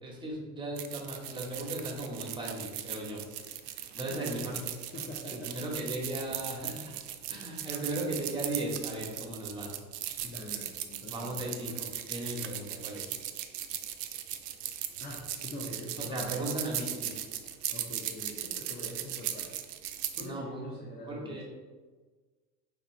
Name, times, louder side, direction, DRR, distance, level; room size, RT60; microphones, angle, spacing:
voice 1, 0.0-3.2 4.0-4.6 5.2-6.8 7.3-9.7 11.1-13.1 16.1-17.2 20.2-20.6 21.1-21.4, right 1 dB, 10° right, -2 dB, 1.3 m, -37 dB
sound 1, 0.8-20.3, right 11 dB, 40° right, 0.4 m, -38 dB
voice 2, 3.9-4.6 4.9-5.7 10.2-11.6 15.0-16.4 17.7-21.4, left 1 dB, 20° left, -3 dB, 0.6 m, -44 dB
4.7 x 3.6 x 3.1 m, 1.4 s
figure-of-eight pair, 70°, 45 cm